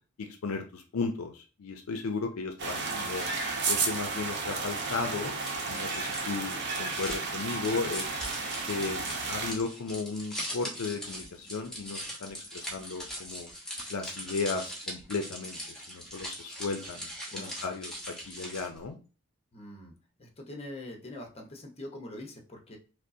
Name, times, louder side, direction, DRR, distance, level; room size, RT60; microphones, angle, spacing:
voice 1, 0.2-3.2 3.7-5.3 5.7-8.2 8.7-13.5 13.9-19.0, left 4 dB, 70° left, 5 dB, 0.5 m, -35 dB
sound 1, 2.6-9.5, right 4 dB, 55° right, 0.8 m, -33 dB
voice 2, 2.8-3.2 17.3-17.6 19.5-19.9 20.2-22.8, left 1 dB, 30° left, 2 dB, 0.8 m, -44 dB
sound 2, 5.4-18.8, equal, 5° left, 1.0 m, -41 dB
5.0 x 2.0 x 2.6 m, 0.34 s
head